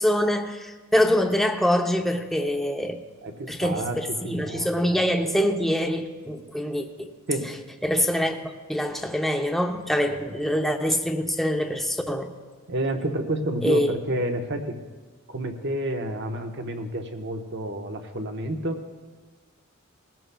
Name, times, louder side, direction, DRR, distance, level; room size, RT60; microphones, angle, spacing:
voice 1, 0.0-3.0 3.5-7.1 7.8-8.4 8.7-12.3 13.6-13.9, equal, ahead, 4 dB, 0.7 m, -24 dB
voice 2, 3.2-4.8 7.3-7.6 12.7-14.7 15.3-19.0, right 1 dB, 55° right, 4 dB, 1.1 m, -30 dB
20.5 x 15.0 x 2.3 m, 1.4 s
head